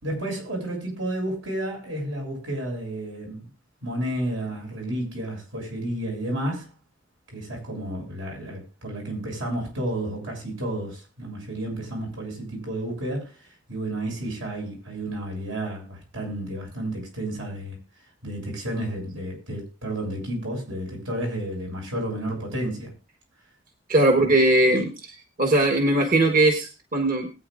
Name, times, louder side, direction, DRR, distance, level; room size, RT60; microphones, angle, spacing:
voice 1, 0.0-3.5 3.8-6.7 7.3-17.8 18.2-22.9 24.2-24.3, right 1 dB, 85° right, 7.0 m, -31 dB
voice 2, 23.9-27.3, right 2 dB, 45° right, 1.4 m, -20 dB
20.5 x 9.1 x 2.5 m
head